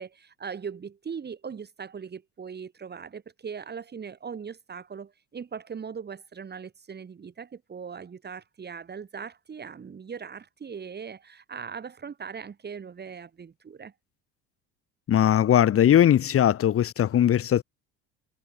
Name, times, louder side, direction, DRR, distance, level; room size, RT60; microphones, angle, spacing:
voice 1, 0.0-13.9, right 6 dB, 30° right, 4.1 m, -40 dB
voice 2, 15.1-17.6, left 10 dB, 45° left, 1.6 m, -20 dB
supercardioid pair, 95°, 32 cm